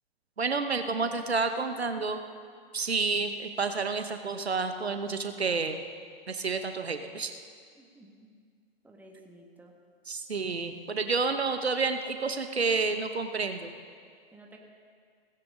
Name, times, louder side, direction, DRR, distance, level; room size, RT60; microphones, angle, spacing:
voice 1, 0.4-2.2 2.7-5.8 6.3-7.3 10.1-13.7, right 4 dB, 85° right, 8 dB, 1.0 m, -29 dB
voice 2, 7.8-8.3 8.8-9.7 14.3-14.6, right 1 dB, 5° right, 0 dB, 1.8 m, -53 dB
17.5 x 16.0 x 3.8 m, 2.1 s
figure-of-eight pair, 105°, 31 cm